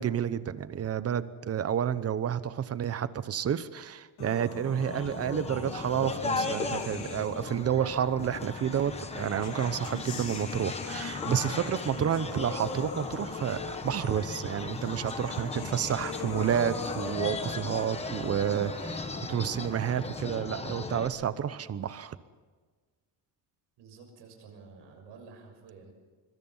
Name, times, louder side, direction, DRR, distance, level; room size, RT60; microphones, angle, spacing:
voice 1, 0.0-22.2, right 9 dB, 35° right, 14 dB, 0.9 m, -30 dB
sound 1, 4.2-7.6 8.6-20.2, left 6 dB, 60° left, 4.0 m, -42 dB
sound 2, 4.8-21.1, left 3 dB, 15° left, 1.2 m, -37 dB
sound 3, 15.8-22.1, right 1 dB, 10° right, 2.0 m, -48 dB
voice 2, 23.8-25.9, right 4 dB, 70° right, 3 dB, 6.5 m, -51 dB
24.5 x 24.0 x 5.6 m, 1.4 s
cardioid pair, 165°, 43 cm